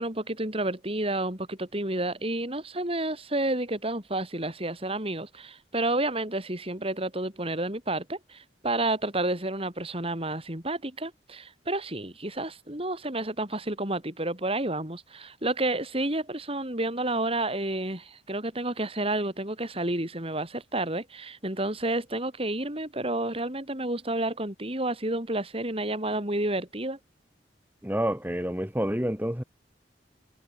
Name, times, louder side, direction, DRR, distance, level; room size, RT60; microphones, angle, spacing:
voice 1, 0.0-27.0, right 2 dB, 35° right, 6.0 m, -30 dB
voice 2, 27.8-29.4, equal, 10° right, 3.4 m, -28 dB
head